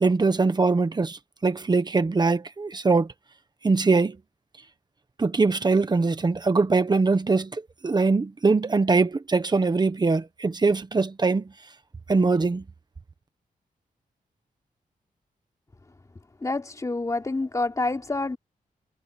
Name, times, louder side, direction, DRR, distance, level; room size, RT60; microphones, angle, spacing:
voice 1, 0.0-3.1 3.6-4.2 5.2-7.5 7.8-11.4 12.1-12.6, right 4 dB, 30° right, 1.3 m, -22 dB
voice 2, 16.4-18.4, left 2 dB, 25° left, 3.4 m, -27 dB
wide cardioid pair, 120°, 15 cm